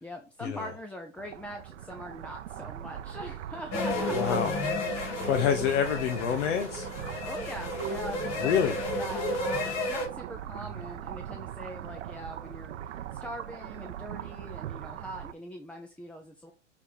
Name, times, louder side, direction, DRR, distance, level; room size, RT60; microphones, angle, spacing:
voice 1, 0.0-4.4 5.2-5.3 7.2-16.5, equal, 5° left, 3 dB, 0.5 m, -42 dB
sound 1, 1.2-15.3, right 11 dB, 80° right, 0.7 m, -41 dB
sound 2, 3.7-10.1, left 2 dB, 45° left, 2.1 m, -32 dB
voice 2, 4.1-4.5 5.3-6.9 8.4-8.7, left 8 dB, 70° left, 5 dB, 1.1 m, -27 dB
6.8 x 3.7 x 4.2 m, 0.31 s
hypercardioid pair, 120°, 36 cm